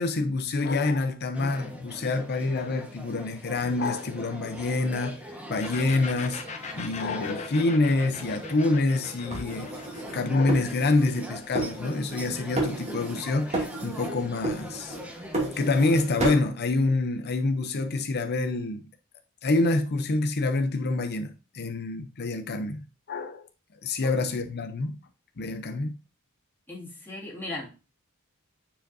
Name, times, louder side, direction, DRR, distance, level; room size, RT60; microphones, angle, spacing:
voice 1, 0.0-6.4 6.7-9.7 10.1-15.0 15.6-18.8 19.4-22.8 23.1-23.5 23.8-25.0 25.4-25.9, left 2 dB, 50° left, 0.6 m, -26 dB
sound 1, 1.3-16.3, equal, 5° right, 1.3 m, -42 dB
sound 2, 5.6-13.1, left 5 dB, 35° left, 1.0 m, -42 dB
sound 3, 9.3-11.3 11.5-12.3 12.6-13.2 13.5-14.1 14.4-15.9 16.2-16.5, right 2 dB, 30° right, 2.5 m, -31 dB
voice 2, 26.7-27.8, left 2 dB, 10° left, 2.4 m, -37 dB
8.9 x 5.0 x 2.7 m
head